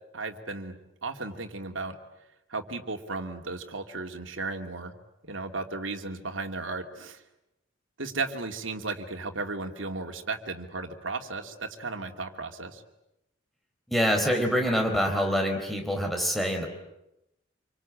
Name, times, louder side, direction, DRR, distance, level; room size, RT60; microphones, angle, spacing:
voice 1, 0.1-0.8 1.0-2.0 2.5-4.9 5.2-7.2 8.0-12.8, right 3 dB, 80° right, 4 dB, 2.6 m, -35 dB
voice 2, 13.9-16.7, equal, ahead, 3 dB, 4.1 m, -25 dB
27.0 x 24.5 x 8.9 m, 0.89 s
head